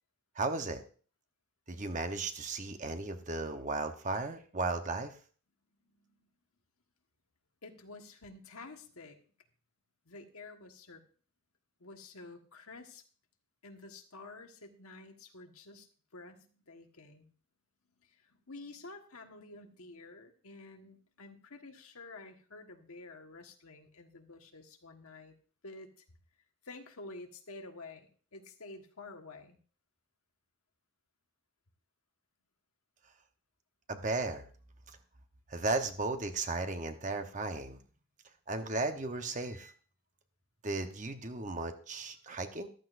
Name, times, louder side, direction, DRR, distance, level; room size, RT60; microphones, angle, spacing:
voice 1, 0.4-0.8 1.7-5.2 33.9-34.5 35.5-37.8 38.5-39.7 40.6-42.7, right 3 dB, 35° right, 7 dB, 1.0 m, -35 dB
voice 2, 5.9-6.3 7.6-9.2 10.0-11.1 11.8-13.0 13.6-17.3 18.0-25.4 25.6-26.0 26.6-29.6, left 3 dB, 75° left, 4 dB, 1.5 m, -50 dB
14.0 x 13.0 x 2.6 m, 0.42 s
head